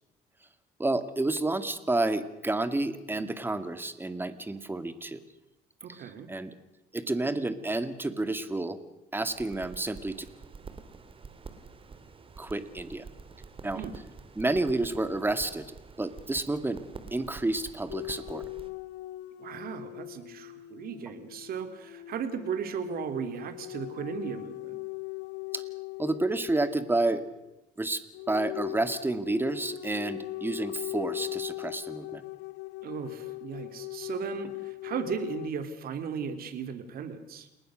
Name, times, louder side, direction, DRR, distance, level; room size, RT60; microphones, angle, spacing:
voice 1, 0.8-5.2 5.9-6.5 6.9-8.8 9.1-10.3 12.4-13.1 13.6-13.8 14.4-15.7 16.0-16.8 17.1-18.4 25.5-25.6 26.0-27.2 27.8-28.0 28.3-32.2, right 2 dB, 10° right, 11 dB, 2.3 m, -30 dB
voice 2, 5.8-6.3 13.7-14.0 19.4-24.8 32.8-37.5, right 7 dB, 60° right, 9 dB, 3.4 m, -36 dB
sound 1, 9.2-18.7, right 4 dB, 30° right, 3.2 m, -47 dB
sound 2, 17.9-27.0 28.1-35.5, left 21 dB, 85° left, 0.8 m, -40 dB
30.0 x 20.5 x 6.5 m, 0.95 s
cardioid pair, 110°, 17 cm